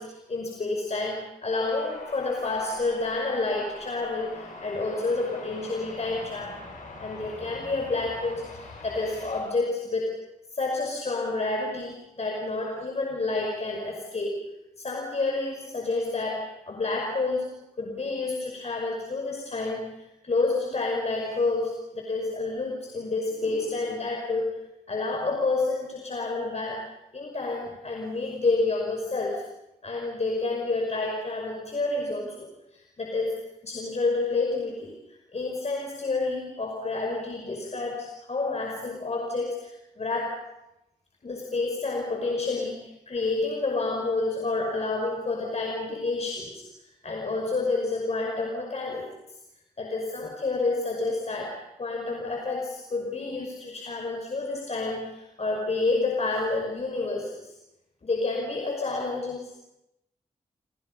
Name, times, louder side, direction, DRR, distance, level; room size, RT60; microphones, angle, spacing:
voice 1, 0.0-6.7 7.0-29.6 29.8-40.5 41.2-49.4 49.8-57.5 58.0-59.6, left 3 dB, 50° left, 1 dB, 5.6 m, -29 dB
sound 1, 1.5-9.4, left 3 dB, 70° left, 8.0 m, -43 dB
30.0 x 27.5 x 5.5 m, 0.87 s
supercardioid pair, 40°, 14 cm